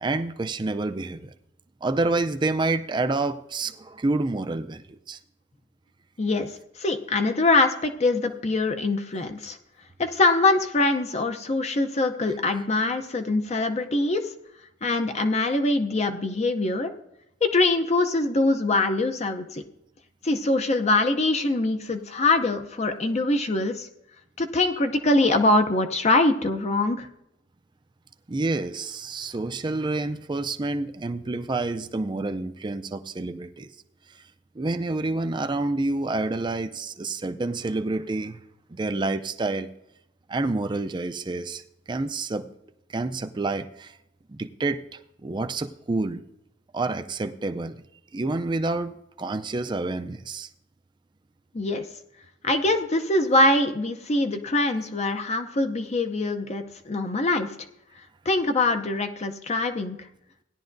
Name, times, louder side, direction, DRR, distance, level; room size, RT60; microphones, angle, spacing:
voice 1, 0.0-1.3 1.8-5.2 28.3-33.7 34.5-38.4 38.7-39.7 40.3-41.6 41.9-42.5 42.9-44.0 44.3-46.2 46.7-47.8 48.1-50.5, right 2 dB, 25° right, 8 dB, 0.4 m, -28 dB
voice 2, 6.2-6.5 6.8-9.6 10.0-14.3 14.8-16.9 17.4-19.6 20.2-23.9 24.4-27.1 51.5-51.8 52.4-57.5 58.3-60.0, left 2 dB, 35° left, 7 dB, 0.6 m, -23 dB
17.0 x 10.5 x 2.6 m, 0.81 s
head